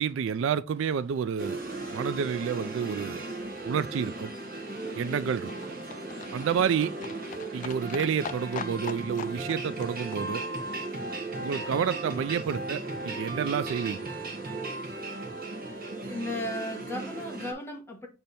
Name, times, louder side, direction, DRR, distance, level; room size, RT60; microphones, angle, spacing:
voice 1, 0.0-1.6 1.9-3.2 3.6-4.3 4.9-5.5 6.3-6.9 7.5-10.4 11.4-14.1, right 7 dB, 60° right, 0.3 m, -29 dB
sound 1, 1.4-17.5, right 2 dB, 45° right, 1.4 m, -36 dB
Livestock farm animals working animals, 4.1-12.0 12.2-12.3 12.6-12.7 12.9-13.0 13.2-13.3 13.5-13.6 13.8-13.9 14.1-14.2 14.4-14.5, left 7 dB, 40° left, 0.3 m, -44 dB
voice 2, 5.4-5.8 16.1-18.1, left 1 dB, 10° left, 1.4 m, -36 dB
6.7 x 3.3 x 4.2 m
head